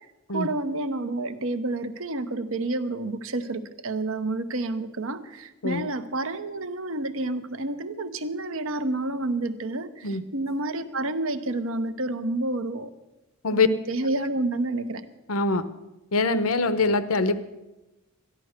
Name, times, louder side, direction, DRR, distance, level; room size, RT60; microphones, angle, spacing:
voice 1, 0.3-12.9 13.5-15.0, right 2 dB, 75° right, 10 dB, 1.0 m, -29 dB
voice 2, 15.3-15.6 16.1-17.4, left 3 dB, 85° left, 12 dB, 0.9 m, -23 dB
13.5 x 11.0 x 6.6 m, 1.0 s
head